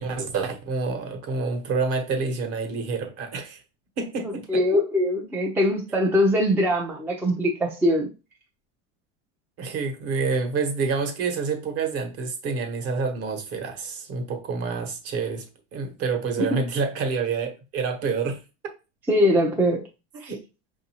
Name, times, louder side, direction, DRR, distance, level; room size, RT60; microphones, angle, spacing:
voice 1, 0.0-3.6 4.0-4.6 9.6-18.4 20.3-20.4, right 4 dB, 40° right, 1.1 m, -28 dB
voice 2, 4.5-8.1 16.4-16.6 19.1-19.8 20.2-20.3, equal, 5° right, 0.4 m, -22 dB
5.3 x 2.6 x 2.9 m
supercardioid pair, 135°, 37 cm